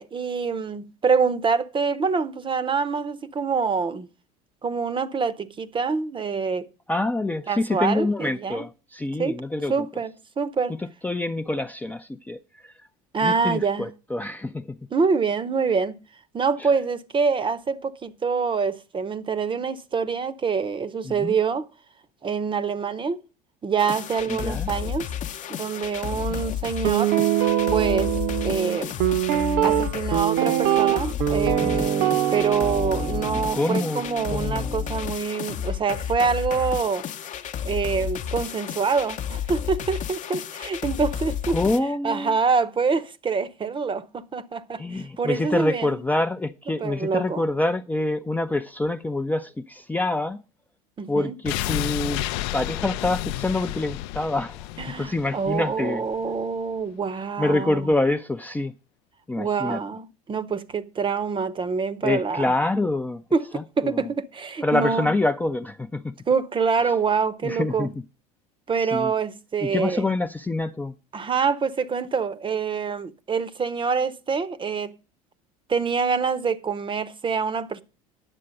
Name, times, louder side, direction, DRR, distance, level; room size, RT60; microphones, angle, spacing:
voice 1, 0.0-4.1 4.6-6.7 7.5-8.6 9.2-9.4 9.7-10.7 13.1-13.9 14.9-15.9 16.3-21.7 22.2-23.2 23.6-25.1 25.5-27.1 27.7-28.1 28.4-28.9 29.6-37.1 37.6-41.6 42.0-45.9 46.7-47.5 51.0-51.4 54.8-57.9 59.4-62.5 63.3-65.2 66.3-67.9 68.7-70.1 71.1-74.9 75.7-77.8, right 5 dB, 25° right, 0.8 m, -26 dB
voice 2, 6.9-9.7 11.0-12.7 13.2-14.8 21.1-21.3 24.3-24.7 26.3-26.4 31.6-31.9 33.5-34.0 34.3-34.7 41.5-42.3 44.8-50.4 51.1-52.2 52.5-54.7 55.0-56.0 57.4-58.7 59.3-59.8 62.0-63.2 63.5-64.1 64.6-66.1 67.4-67.9 68.8-69.1 69.6-70.9, left 2 dB, 10° left, 0.5 m, -26 dB
sound 1, 23.8-41.8, left 9 dB, 40° left, 0.8 m, -32 dB
Guitar, 26.8-35.0, right 11 dB, 55° right, 1.0 m, -24 dB
sound 2, 51.4-56.4 56.7-56.8, left 14 dB, 65° left, 0.5 m, -31 dB
9.9 x 7.4 x 5.1 m
hypercardioid pair, 75°, 20 cm